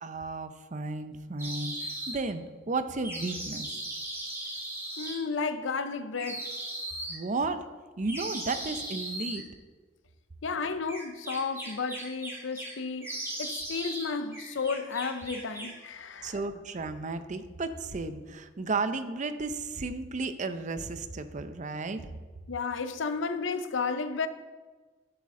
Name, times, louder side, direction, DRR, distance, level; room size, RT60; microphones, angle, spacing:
voice 1, 0.0-3.7 7.1-7.7 8.0-9.5 16.2-22.1, right 3 dB, 40° right, 0.6 m, -33 dB
sound 1, 1.4-2.1 3.0-5.2 6.2-7.2 8.0-9.4 10.9-12.7 13.0-14.1 14.3-15.8, right 1 dB, 15° right, 2.4 m, -37 dB
voice 2, 5.0-6.5 10.4-16.4 22.5-24.3, left 4 dB, 80° left, 0.6 m, -33 dB
11.5 x 7.5 x 3.7 m
head